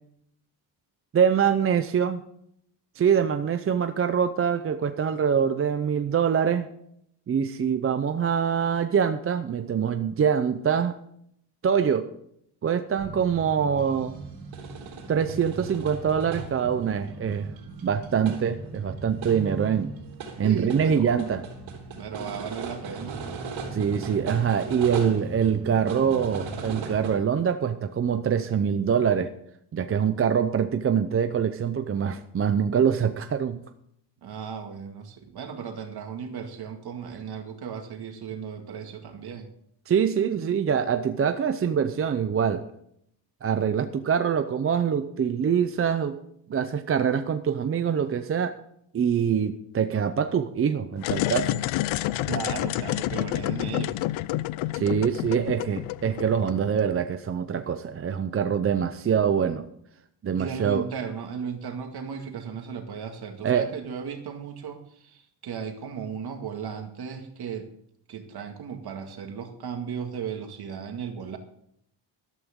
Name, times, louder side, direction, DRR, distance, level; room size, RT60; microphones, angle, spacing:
voice 1, 1.1-2.2 3.0-6.7 7.3-10.9 11.6-12.1 12.6-14.1 15.1-17.5 17.8-19.9 20.4-21.4 23.7-29.3 29.7-33.6 39.9-42.6 43.4-46.2 46.5-48.6 48.9-51.6 54.7-59.7 60.2-60.8 63.4-63.7, right 7 dB, 30° right, 9 dB, 0.6 m, -24 dB
Prominent Snares, 13.0-27.1, right 4 dB, 80° right, 3.4 m, -38 dB
voice 2, 20.4-21.2 22.0-23.2 34.2-39.5 52.3-54.0 60.4-67.7 68.1-71.4, right 6 dB, 55° right, 5 dB, 2.1 m, -36 dB
sound 1, 51.0-56.8, left 15 dB, 90° left, 0.6 m, -29 dB
13.5 x 12.5 x 3.7 m, 0.71 s
cardioid pair, 150°, 47 cm